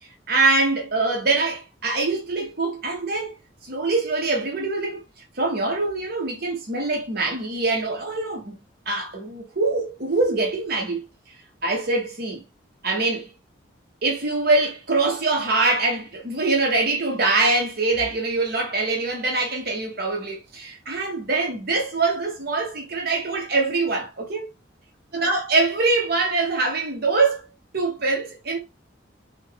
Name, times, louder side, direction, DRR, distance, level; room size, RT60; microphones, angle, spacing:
voice 1, 0.3-3.4 3.6-5.0 5.4-11.0 11.6-12.4 12.8-13.3 14.0-24.5 25.1-27.4 27.7-28.6, right 3 dB, 55° right, 1.1 m, -24 dB
3.6 x 2.5 x 3.3 m
head